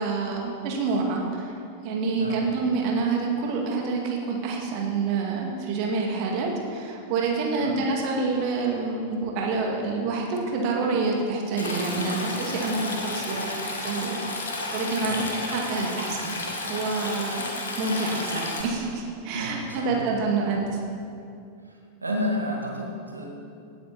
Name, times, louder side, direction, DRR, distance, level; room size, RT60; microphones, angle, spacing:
voice 1, 0.0-1.5 1.8-15.2 15.5-16.4 16.7-20.7, right 4 dB, 45° right, 0 dB, 2.1 m, -27 dB
voice 2, 2.1-2.5 7.6-7.8 15.0-15.2 19.3-20.0 20.4-20.6 21.7-23.3, left 1 dB, 80° right, 0 dB, 1.9 m, -31 dB
Stream, 11.6-18.6, left 2 dB, 70° left, 1.9 m, -32 dB
17.5 x 9.4 x 4.2 m, 2.4 s
figure-of-eight pair, 90°, 0 cm